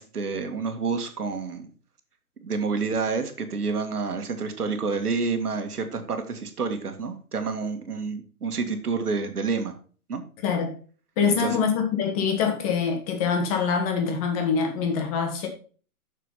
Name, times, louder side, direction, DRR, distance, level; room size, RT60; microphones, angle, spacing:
voice 1, 0.0-1.7 2.4-9.8 10.1-10.2 11.2-11.6, right 4 dB, 85° right, 2.1 m, -29 dB
voice 2, 10.4-10.7 11.2-15.5, left 6 dB, 25° left, 1.8 m, -24 dB
6.7 x 6.6 x 5.7 m
hypercardioid pair, 155°, 45 cm